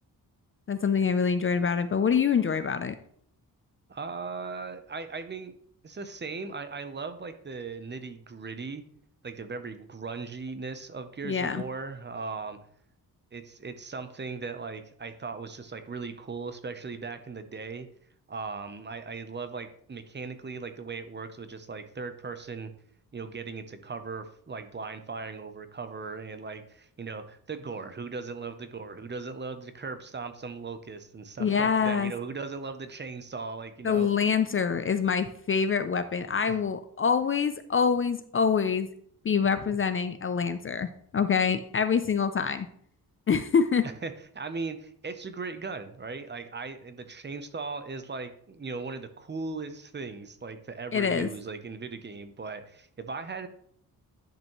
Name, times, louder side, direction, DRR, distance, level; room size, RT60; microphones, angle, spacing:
voice 1, 0.7-2.9 11.2-11.6 31.4-32.1 33.8-38.9 39.2-40.9 41.1-42.7 43.3-43.9 50.9-51.3, left 6 dB, 35° left, 11 dB, 0.4 m, -25 dB
voice 2, 3.9-5.5 5.8-8.8 9.2-12.6 13.3-17.9 18.3-22.7 23.1-34.1 36.5-36.6 44.0-53.5, right 4 dB, 30° right, 10 dB, 0.7 m, -38 dB
10.5 x 5.4 x 3.0 m, 0.64 s
wide cardioid pair, 140°, 36 cm